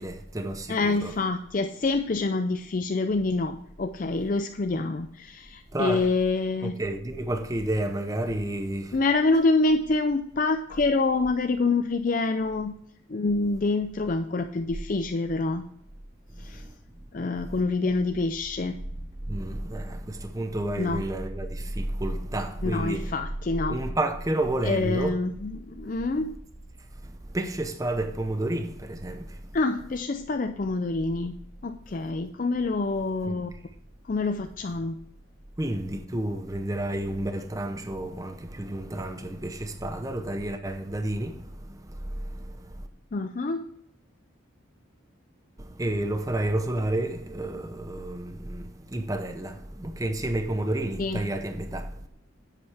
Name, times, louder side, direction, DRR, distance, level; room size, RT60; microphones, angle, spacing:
voice 1, 0.0-1.1 5.7-6.1 6.6-9.0 19.3-23.1 23.7-25.2 27.3-29.2 33.2-33.4 35.6-41.5 42.3-42.4 45.8-51.9, right 1 dB, 15° right, 0.7 m, -30 dB
voice 2, 0.7-6.8 8.9-12.8 13.1-15.6 16.4-16.6 17.1-18.8 20.8-21.0 22.6-23.8 24.6-26.3 29.5-31.3 31.6-33.5 34.1-34.9 43.1-43.6 51.0-51.2, left 3 dB, 40° left, 0.4 m, -26 dB
10.5 x 8.2 x 3.4 m
head